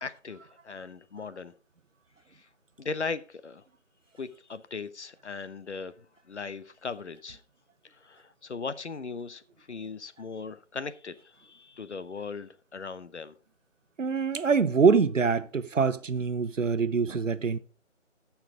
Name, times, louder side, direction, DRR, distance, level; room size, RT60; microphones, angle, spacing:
voice 1, 0.0-1.5 2.3-2.5 2.8-3.6 4.2-7.4 7.9-9.4 9.7-13.3, left 4 dB, 65° left, 0.9 m, -38 dB
voice 2, 14.0-17.6, right 5 dB, 90° right, 0.9 m, -24 dB
14.5 x 5.8 x 3.7 m
figure-of-eight pair, 175°, 37 cm